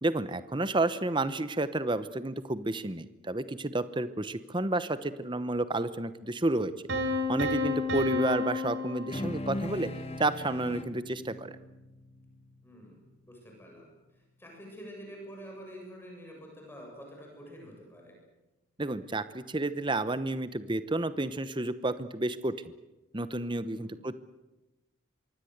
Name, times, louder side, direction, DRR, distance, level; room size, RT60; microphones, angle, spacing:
voice 1, 0.0-6.7 7.3-9.9 10.2-11.6 18.8-22.5 23.1-24.1, right 2 dB, 25° right, 13 dB, 0.9 m, -31 dB
Piano, 6.9-9.8, left 3 dB, 70° right, 4.0 m, -31 dB
voice 2, 7.9-8.2 12.6-13.9 14.1-18.2 23.8-24.0, equal, 10° left, 0 dB, 7.8 m, -48 dB
sound 1, 9.1-13.8, left 1 dB, 30° left, 1.3 m, -40 dB
25.5 x 23.5 x 8.1 m, 1.0 s
head